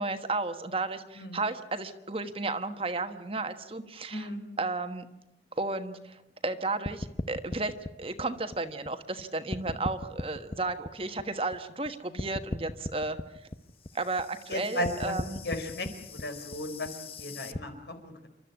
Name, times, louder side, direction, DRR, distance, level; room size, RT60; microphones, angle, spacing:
voice 1, 0.0-4.3 4.6-5.1 5.5-13.2 13.9-15.4, right 3 dB, 30° right, 8 dB, 1.3 m, -33 dB
voice 2, 4.1-4.4 14.5-15.1 15.4-18.3, left 1 dB, 75° left, 6 dB, 4.4 m, -35 dB
sound 1, 6.9-9.2 9.5-11.9 12.2-17.6, left 2 dB, 35° left, 0.8 m, -38 dB
28.5 x 13.0 x 9.7 m, 0.92 s
head